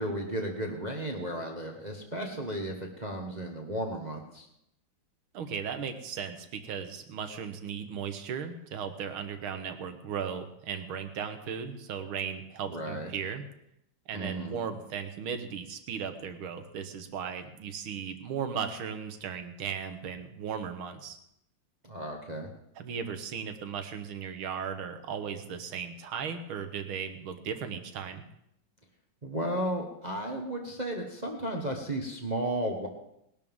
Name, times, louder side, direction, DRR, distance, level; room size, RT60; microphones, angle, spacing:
voice 1, 0.0-4.5 12.7-13.1 14.1-14.6 21.8-22.5 29.2-32.9, right 1 dB, 25° right, 1 dB, 1.2 m, -34 dB
voice 2, 5.3-13.4 14.1-21.2 22.8-28.3, right 7 dB, 75° right, 8 dB, 2.0 m, -36 dB
19.5 x 12.0 x 3.7 m, 0.78 s
omnidirectional pair, 2.3 m